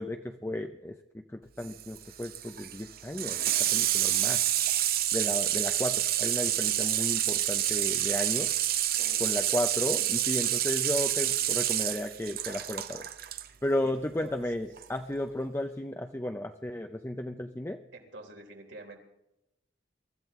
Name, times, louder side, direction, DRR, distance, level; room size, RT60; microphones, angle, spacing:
voice 1, 0.0-3.4 3.7-4.4 5.1-8.5 9.2-13.1 13.6-17.8, left 1 dB, 15° left, 5 dB, 0.5 m, -34 dB
Water tap faucet / Sink (filling or washing), 1.6-13.5 14.8-14.9, right 12 dB, 50° right, 0.8 m, -28 dB
voice 2, 9.0-9.6 13.8-14.4 17.9-19.0, right 2 dB, 80° right, 2 dB, 3.6 m, -48 dB
23.5 x 14.0 x 3.6 m, 0.90 s
head